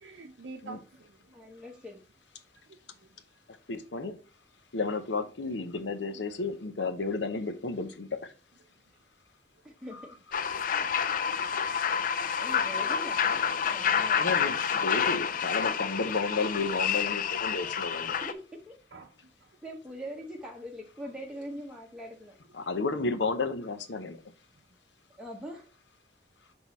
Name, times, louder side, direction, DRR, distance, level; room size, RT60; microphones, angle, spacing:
voice 1, 0.0-1.3 2.7-3.1 10.7-10.9 18.9-19.5, right 3 dB, 85° right, 0.7 m, -48 dB
voice 2, 1.3-2.0 9.6-10.1 12.4-14.2 18.2-18.8 19.6-22.4 25.2-25.7, equal, 5° right, 0.9 m, -42 dB
voice 3, 3.5-4.2 4.7-8.3 9.9-10.1 14.2-18.2 22.5-24.2, left 3 dB, 85° left, 0.8 m, -32 dB
sound 1, 10.3-18.3, left 7 dB, 50° left, 0.4 m, -28 dB
6.1 x 3.9 x 4.1 m
head